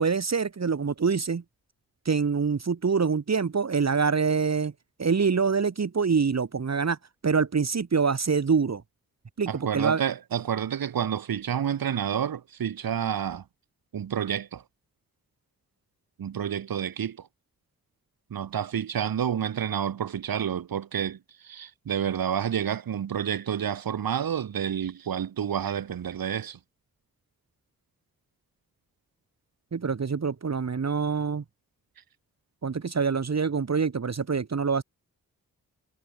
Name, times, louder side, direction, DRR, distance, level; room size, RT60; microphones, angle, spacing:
voice 1, 0.0-1.4 2.1-4.7 5.0-7.0 7.2-8.8 9.4-10.0 29.7-31.4 32.6-34.8, right 5 dB, 50° right, 2.3 m, -25 dB
voice 2, 9.5-13.4 13.9-14.6 16.2-17.3 18.3-26.6, right 8 dB, 75° right, 3.6 m, -29 dB
supercardioid pair, 40°, 35 cm